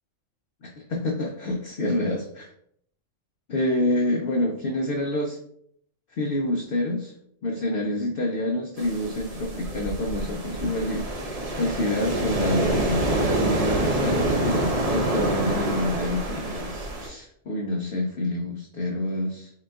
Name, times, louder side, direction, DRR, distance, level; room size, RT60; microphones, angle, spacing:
voice 1, 0.6-2.5 3.5-5.4 6.1-7.1 7.4-11.1 11.5-19.5, left 1 dB, 60° left, 1 dB, 0.6 m, -27 dB
sound 1, 8.8-17.1, right 1 dB, 45° right, 0.5 m, -26 dB
3.9 x 3.7 x 2.3 m, 0.70 s
omnidirectional pair, 1.4 m